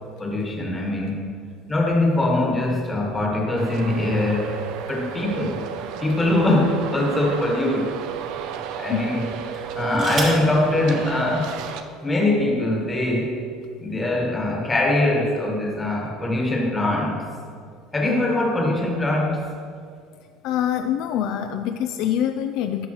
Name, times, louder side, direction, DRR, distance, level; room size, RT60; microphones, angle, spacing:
voice 1, 0.2-1.3 1.7-4.6 4.9-5.6 6.0-8.0 8.8-11.6 12.0-13.4 13.8-17.2 17.9-19.5, left 1 dB, 15° left, 0 dB, 1.3 m, -22 dB
Traffic noise roadway noise, 3.6-11.8, right 7 dB, 65° right, 0.5 m, -33 dB
sound 1, 5.7-7.0 7.7-7.8 9.5-10.5 11.7-11.8 12.1-12.5, right 3 dB, 40° right, 1.9 m, -34 dB
voice 2, 20.4-22.9, left 10 dB, 65° left, 7 dB, 0.3 m, -25 dB
12.5 x 5.4 x 3.0 m, 2.2 s
cardioid pair, 135°, 0 cm